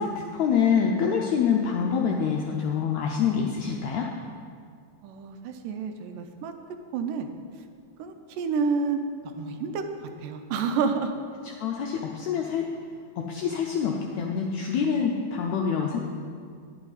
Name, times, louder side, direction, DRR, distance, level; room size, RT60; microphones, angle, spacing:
voice 1, 0.0-4.1 11.6-12.7 13.2-16.0, left 6 dB, 80° left, 1 dB, 1.6 m, -26 dB
voice 2, 5.0-6.5 6.9-7.3 8.0-9.0 9.4-9.8 10.2-11.1, right 5 dB, 85° right, 6 dB, 2.2 m, -29 dB
9.8 x 9.5 x 4.0 m, 2.2 s
omnidirectional pair, 3.9 m